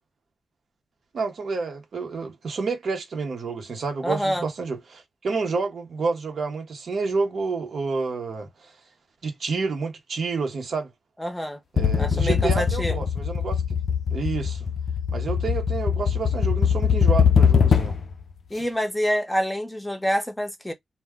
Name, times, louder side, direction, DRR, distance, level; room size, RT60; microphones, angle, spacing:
voice 1, 1.1-8.7 9.2-10.9 11.7-13.6 14.1-14.7 15.1-18.0, right 4 dB, 75° right, 0.8 m, -29 dB
voice 2, 4.0-4.5 11.2-11.6 12.0-13.0 18.5-20.7, equal, 5° left, 0.6 m, -26 dB
sound 1, 11.8-18.1, left 7 dB, 65° left, 0.3 m, -22 dB
2.2 x 2.1 x 3.4 m
wide cardioid pair, 95°, 0 cm